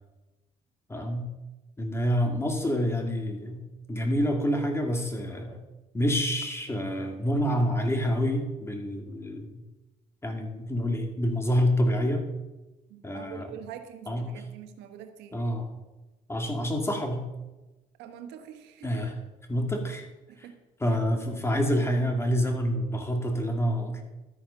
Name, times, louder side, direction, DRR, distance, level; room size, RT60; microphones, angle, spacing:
voice 1, 0.9-1.3 1.8-3.6 3.9-5.6 5.9-9.6 10.2-12.2 13.0-13.5 14.1-14.3 15.3-15.7 16.3-17.3 18.8-19.1 19.5-20.1 20.8-24.0, equal, 15° left, 4 dB, 2.2 m, -27 dB
voice 2, 12.9-15.4 18.0-19.0 20.3-20.6, right 9 dB, 90° right, 7 dB, 1.4 m, -44 dB
12.5 x 9.4 x 5.6 m, 1.1 s
cardioid pair, 110°, 17 cm